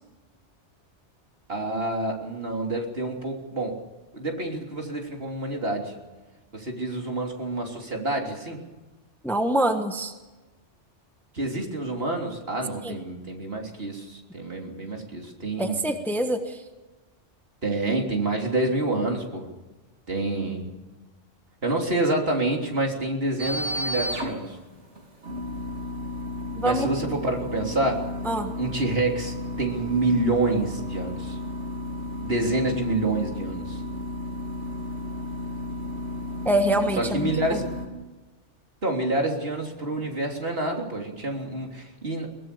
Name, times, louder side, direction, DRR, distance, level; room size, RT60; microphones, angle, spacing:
voice 1, 1.5-3.8 4.1-5.9 6.5-8.6 11.3-15.8 17.6-19.5 20.1-20.7 21.6-24.6 26.6-28.1 28.6-31.4 32.2-33.8 37.0-37.6 38.8-42.3, right 2 dB, 55° right, 1 dB, 3.6 m, -27 dB
voice 2, 9.2-10.1 12.8-13.0 15.6-16.6 26.5-26.9 28.2-28.5 36.4-37.6, right 1 dB, ahead, 6 dB, 1.4 m, -25 dB
sound 1, 23.4-37.9, left 1 dB, 75° right, 3.6 m, -33 dB
22.5 x 19.0 x 6.9 m, 1.2 s
omnidirectional pair, 1.2 m